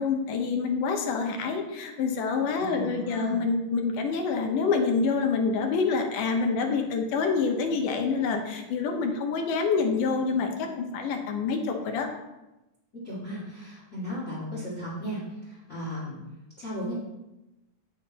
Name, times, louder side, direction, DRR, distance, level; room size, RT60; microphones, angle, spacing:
voice 1, 0.0-12.1, left 5 dB, 80° left, 3 dB, 2.5 m, -27 dB
voice 2, 2.6-3.4 12.9-16.2 16.6-16.9, equal, 25° left, -7 dB, 1.9 m, -35 dB
8.4 x 5.7 x 4.1 m, 0.99 s
omnidirectional pair, 3.7 m